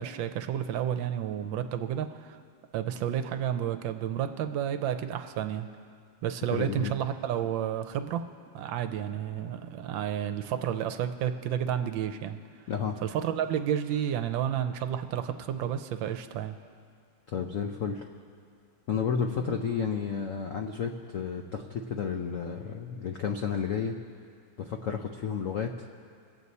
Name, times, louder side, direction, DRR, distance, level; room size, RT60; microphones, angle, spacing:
voice 1, 0.0-2.4 2.7-5.7 6.2-8.2 8.5-12.4 13.0-16.6, right 9 dB, 75° right, 8 dB, 1.3 m, -31 dB
voice 2, 6.5-6.9 12.7-13.0 17.3-18.1 18.9-24.0 24.6-25.9, left 6 dB, 85° left, 3 dB, 0.7 m, -31 dB
23.0 x 8.1 x 4.1 m, 2.2 s
omnidirectional pair, 2.2 m